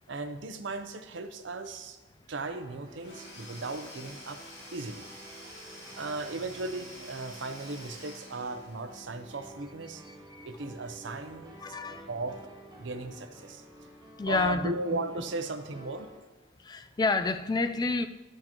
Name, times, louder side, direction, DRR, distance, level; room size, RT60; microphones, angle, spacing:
voice 1, 0.1-2.0 2.3-4.4 4.7-5.0 5.9-10.0 10.4-11.6 12.1-12.4 12.8-13.6 14.3-16.1, right 3 dB, 85° right, 9 dB, 0.7 m, -36 dB
sound 1, 2.5-16.2, right 1 dB, 25° right, 0.9 m, -51 dB
Domestic sounds home sounds / Tools, 3.0-9.1, left 1 dB, 65° left, 2.7 m, -48 dB
voice 2, 11.6-12.1 14.2-14.7 16.6-18.1, left 3 dB, 20° left, 9 dB, 0.3 m, -29 dB
11.5 x 6.5 x 2.9 m, 1.2 s
head